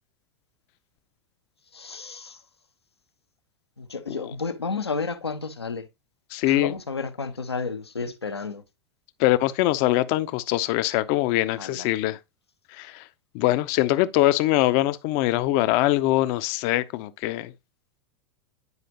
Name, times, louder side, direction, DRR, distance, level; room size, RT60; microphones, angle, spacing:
voice 1, 1.7-2.4 3.8-5.8 6.6-8.6 11.6-11.9, left 4 dB, 90° left, 0.8 m, -31 dB
voice 2, 6.3-6.7 9.2-12.2 12.8-13.0 13.3-17.5, left 16 dB, 50° left, 0.6 m, -23 dB
9.5 x 4.9 x 2.9 m
figure-of-eight pair, 90°, 13 cm